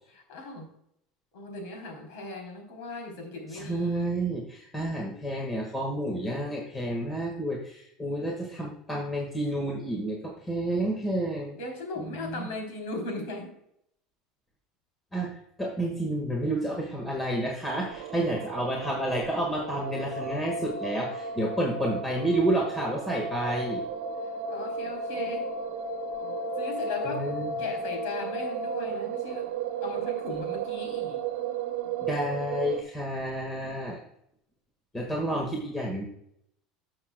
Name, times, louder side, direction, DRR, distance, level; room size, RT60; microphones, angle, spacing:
voice 1, 0.1-0.6 1.3-4.1 11.5-13.5 24.5-25.5 26.6-27.3 27.6-29.5 29.8-31.2, left 2 dB, 75° left, 2 dB, 3.2 m, -37 dB
voice 2, 3.5-11.5 12.0-12.5 15.1-15.3 15.6-23.8 27.0-27.5 32.0-34.0 34.9-36.1, right 1 dB, 15° left, 0 dB, 1.6 m, -30 dB
sound 1, 17.8-32.8, right 4 dB, 90° right, 1.0 m, -34 dB
13.0 x 6.6 x 2.2 m, 0.74 s
supercardioid pair, 135°, 0 cm